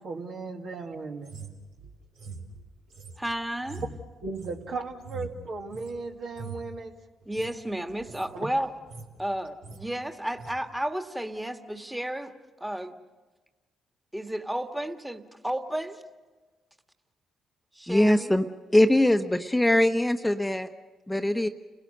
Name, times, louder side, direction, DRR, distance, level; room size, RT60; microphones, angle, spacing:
voice 1, 0.0-1.4 4.2-6.9 8.3-8.5, right 3 dB, 65° right, 2.3 m, -36 dB
sound 1, 1.2-6.0 6.3-6.7 7.2-7.5 7.9-8.3 8.6-9.2 9.4-9.8 10.4-10.6, right 3 dB, 80° right, 2.4 m, -43 dB
voice 2, 3.2-3.8 7.3-8.7 9.2-12.3 12.6-13.0 14.1-16.0 17.7-18.4, right 1 dB, 10° right, 1.8 m, -32 dB
voice 3, 17.9-18.4 18.7-20.7 21.1-21.5, left 1 dB, 10° left, 1.1 m, -22 dB
30.0 x 17.0 x 6.7 m
hypercardioid pair, 50°, 0 cm